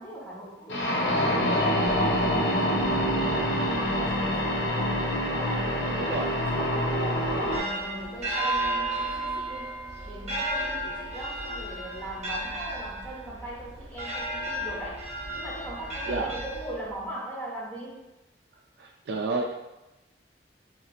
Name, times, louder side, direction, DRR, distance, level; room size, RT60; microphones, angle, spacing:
voice 1, 0.0-9.8 10.0-15.0 15.3-18.1, right 1 dB, 10° left, -6 dB, 0.7 m, -40 dB
sound 1, 0.7-7.6, equal, 90° left, 0.7 m, -26 dB
sound 2, 7.1-17.1, right 1 dB, 40° right, 0.8 m, -33 dB
voice 2, 18.8-19.6, right 3 dB, 70° right, 1 dB, 0.4 m, -30 dB
3.0 x 2.9 x 2.4 m, 0.99 s
head